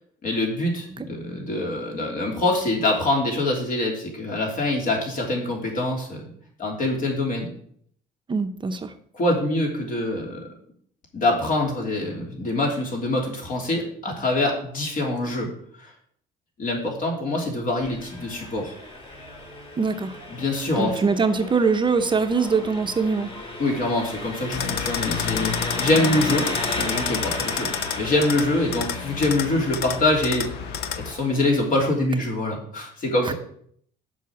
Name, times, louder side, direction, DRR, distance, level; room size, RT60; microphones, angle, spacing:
voice 1, 0.2-6.2 6.6-7.5 9.1-10.4 11.1-15.5 15.8-15.9 16.6-18.7 20.3-21.0 23.6-26.5 26.8-27.7 28.0-30.5 30.9-33.3, left 2 dB, 55° left, 1 dB, 3.1 m, -24 dB
voice 2, 8.3-8.9 19.8-20.2 20.8-23.3 33.2-33.3, right 4 dB, 30° right, 8 dB, 0.7 m, -23 dB
Engine, 17.8-31.8, left 2 dB, 35° left, 2.2 m, -35 dB
sound 1, 24.5-31.1, left 8 dB, 75° left, 0.7 m, -30 dB
7.5 x 5.5 x 7.1 m, 0.63 s
cardioid pair, 110°, 17 cm